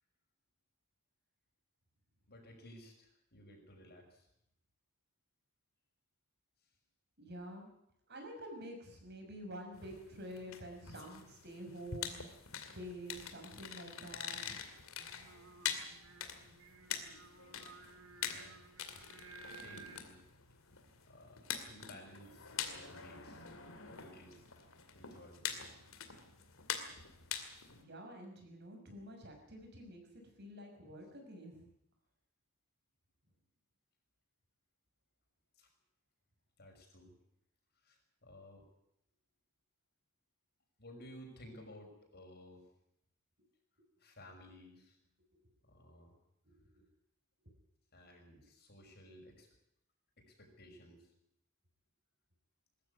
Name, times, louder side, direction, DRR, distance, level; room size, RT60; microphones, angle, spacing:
voice 1, 2.3-4.3 18.2-18.6 19.5-20.2 21.0-23.4 23.9-24.5 24.9-25.5 25.9-26.2 35.6-35.7 36.6-37.1 37.8-38.6 40.8-42.7 44.0-45.0 45.6-46.2 47.9-49.5 50.2-51.1, left 1 dB, 50° left, 2 dB, 6.0 m, -56 dB
voice 2, 7.2-7.7 8.1-12.3 12.7-14.6 27.8-30.0 30.4-31.6 46.4-46.8, equal, 50° right, 3 dB, 6.2 m, -48 dB
sound 1, 9.7-27.8, left 8 dB, 70° left, 2.5 m, -45 dB
Singing, 15.0-20.0, right 4 dB, 65° right, 2.5 m, -56 dB
21.0 x 14.0 x 9.6 m, 0.78 s
head